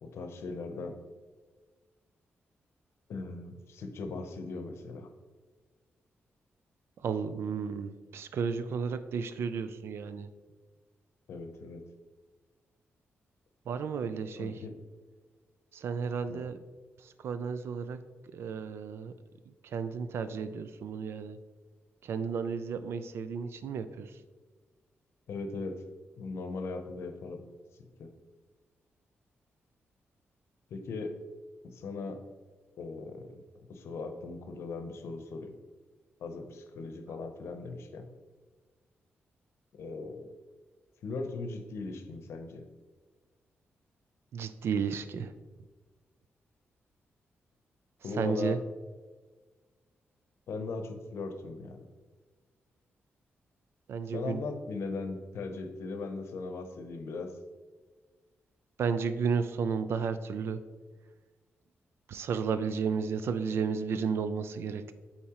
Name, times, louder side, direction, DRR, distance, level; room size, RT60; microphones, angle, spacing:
voice 1, 0.0-1.0 3.1-5.1 11.3-11.8 14.4-14.8 16.3-16.4 25.3-25.8 26.2-27.4 28.0-28.1 30.7-31.1 31.6-32.2 32.8-33.4 33.7-35.6 36.2-38.1 39.7-40.3 41.0-42.6 48.0-48.6 50.5-51.9 54.1-57.3, left 3 dB, 80° left, 6 dB, 0.7 m, -38 dB
voice 2, 7.0-10.3 13.7-14.6 15.7-16.6 17.0-18.0 18.3-19.1 19.5-21.4 22.0-24.2 44.3-45.3 48.2-48.6 53.9-54.4 58.8-60.6 62.1-64.9, right 6 dB, 70° right, 12 dB, 0.4 m, -33 dB
8.4 x 4.3 x 2.9 m, 1.4 s
wide cardioid pair, 175°, 4 cm